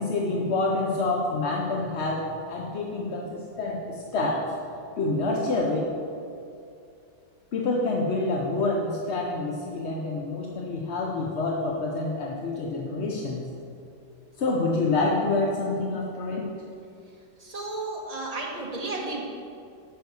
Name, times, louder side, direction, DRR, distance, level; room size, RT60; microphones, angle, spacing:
voice 1, 0.0-4.5 5.0-5.9 7.5-13.4 14.4-16.5, left 2 dB, 55° left, 0 dB, 0.8 m, -27 dB
voice 2, 17.4-19.2, right 2 dB, 25° right, -2 dB, 1.4 m, -33 dB
6.7 x 6.1 x 6.9 m, 2.5 s
omnidirectional pair, 1.9 m